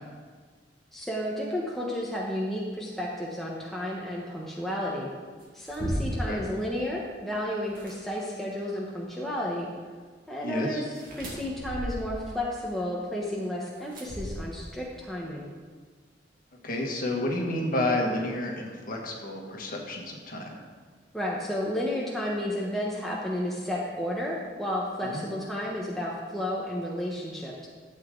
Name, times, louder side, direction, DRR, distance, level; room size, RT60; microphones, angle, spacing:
voice 1, 0.9-5.1 5.5-9.7 10.3-15.5 21.1-27.7, left 1 dB, ahead, -5 dB, 1.1 m, -32 dB
sound 1, 5.4-6.4 7.6-7.9 10.9-12.2 13.9-14.8, equal, 55° right, 2.2 m, -35 dB
voice 2, 10.4-10.8 16.6-20.5 25.0-25.2, left 1 dB, 50° left, 0 dB, 1.6 m, -30 dB
12.5 x 8.0 x 3.8 m, 1.5 s
head